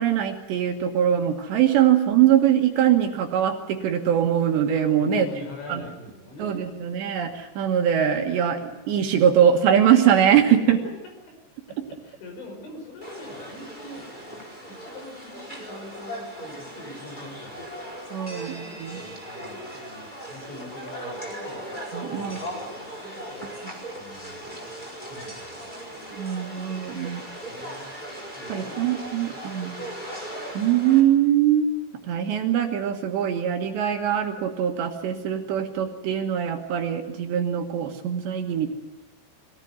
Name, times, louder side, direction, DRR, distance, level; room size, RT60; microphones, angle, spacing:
voice 1, 0.0-5.3 5.7-5.8 6.4-10.8 18.1-19.0 21.9-22.4 26.1-27.2 28.5-29.7 30.5-31.7 32.0-38.7, right 9 dB, 70° right, 4 dB, 3.2 m, -22 dB
voice 2, 5.0-6.9 10.7-10.8 11.3-11.4 12.0-17.9 18.9-21.7 22.0-22.7 23.0-23.5 23.9-24.8 25.1-26.1 26.9-27.9 28.3-28.8 29.2-30.1, left 2 dB, 60° left, 3 dB, 7.7 m, -44 dB
sound 1, 13.0-31.0, right 1 dB, 10° left, 4.0 m, -38 dB
23.0 x 17.5 x 9.5 m, 1.0 s
omnidirectional pair, 5.9 m